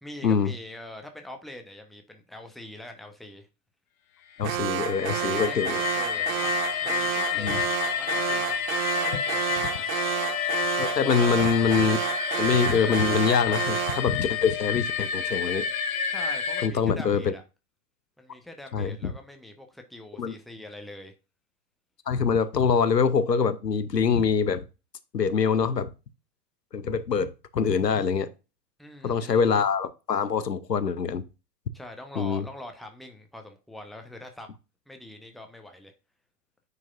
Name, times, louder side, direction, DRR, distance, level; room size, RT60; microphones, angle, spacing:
voice 1, 0.0-3.5 5.1-8.7 9.0-10.0 11.0-11.4 16.1-17.4 18.2-21.1 28.8-29.4 31.7-34.5 34.9-35.9, left 1 dB, ahead, 0.9 m, -43 dB
voice 2, 4.4-5.8 7.4-7.6 10.8-12.0 12.4-15.7 16.6-17.3 18.7-19.0 20.2-20.3 22.1-24.6 25.1-25.9 26.7-28.3 29.0-31.2 32.2-32.5, left 6 dB, 85° left, 0.8 m, -24 dB
sound 1, 4.4-16.7, left 8 dB, 60° left, 1.1 m, -30 dB
Alarm, 4.4-14.1, right 12 dB, 60° right, 0.7 m, -30 dB
9.5 x 4.7 x 2.5 m
figure-of-eight pair, 90°, 48 cm